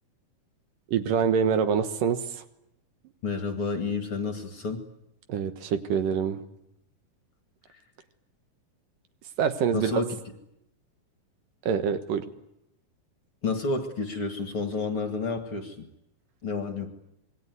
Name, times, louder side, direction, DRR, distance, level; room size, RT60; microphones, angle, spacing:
voice 1, 0.9-2.4 5.3-6.4 9.4-10.0 11.7-12.3, right 7 dB, 70° right, 10 dB, 2.8 m, -25 dB
voice 2, 3.2-4.8 7.7-7.8 9.7-10.1 13.4-15.9 16.4-16.9, left 3 dB, 40° left, 7 dB, 2.4 m, -30 dB
26.5 x 22.0 x 9.5 m, 0.81 s
omnidirectional pair, 4.3 m